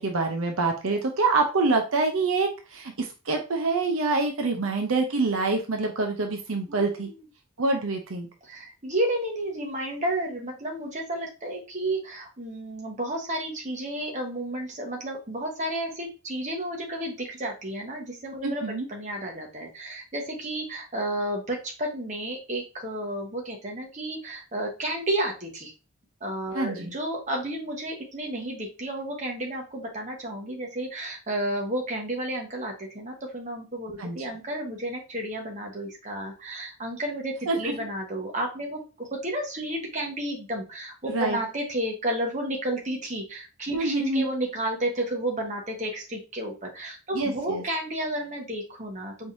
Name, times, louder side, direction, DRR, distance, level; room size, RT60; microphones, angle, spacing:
voice 1, 0.0-7.1 7.6-8.3 18.4-18.9 26.5-26.9 34.0-34.2 37.5-37.7 41.1-41.4 43.7-44.2 47.1-47.6, right 3 dB, 75° right, 3 dB, 0.7 m, -26 dB
voice 2, 6.7-7.2 8.4-25.7 26.2-49.3, right 1 dB, 35° right, 1 dB, 1.2 m, -32 dB
4.6 x 3.7 x 2.6 m, 0.32 s
head